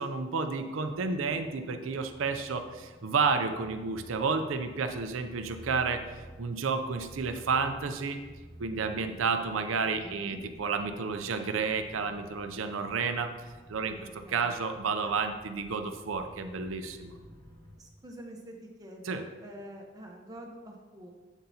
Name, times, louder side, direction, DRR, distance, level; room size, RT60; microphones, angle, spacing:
voice 1, 0.0-8.2 8.6-14.0 14.3-17.1 19.0-19.2, right 5 dB, 85° right, 7 dB, 0.5 m, -31 dB
sound 1, 0.7-17.7, equal, 25° left, 2.2 m, -52 dB
voice 2, 10.0-10.4 14.0-14.5 15.0-15.1 17.8-21.1, equal, 20° right, 0 dB, 1.0 m, -47 dB
8.1 x 7.7 x 2.8 m, 1.3 s
head